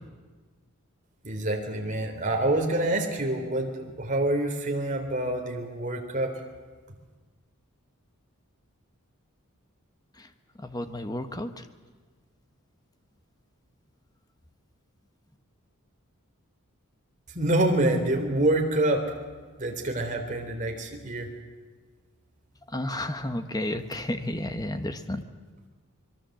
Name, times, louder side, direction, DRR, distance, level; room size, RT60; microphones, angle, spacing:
voice 1, 1.2-6.3 17.3-19.2 19.6-21.3, right 1 dB, 35° right, 3 dB, 3.3 m, -26 dB
voice 2, 10.6-11.7 22.7-25.2, left 1 dB, 15° left, 8 dB, 1.3 m, -32 dB
24.5 x 22.5 x 7.8 m, 1.4 s
head